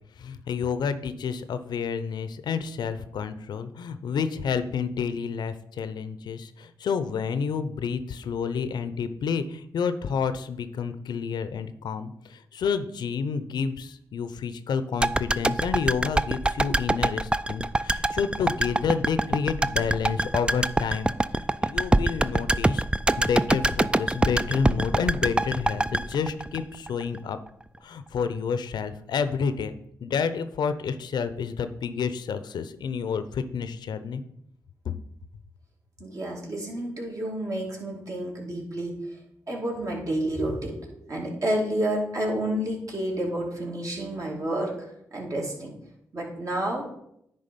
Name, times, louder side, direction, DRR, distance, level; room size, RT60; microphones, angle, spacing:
voice 1, 0.2-22.8 23.2-27.4 27.8-29.7 30.0-34.2, left 6 dB, 75° left, 11 dB, 0.6 m, -29 dB
sound 1, 15.0-27.2 27.5-27.6, right 2 dB, 15° right, 0.3 m, -24 dB
voice 2, 36.0-39.2 39.5-45.7 46.1-46.9, right 1 dB, 50° right, -2 dB, 2.6 m, -30 dB
9.9 x 3.5 x 5.2 m, 0.76 s
supercardioid pair, 45°, 7 cm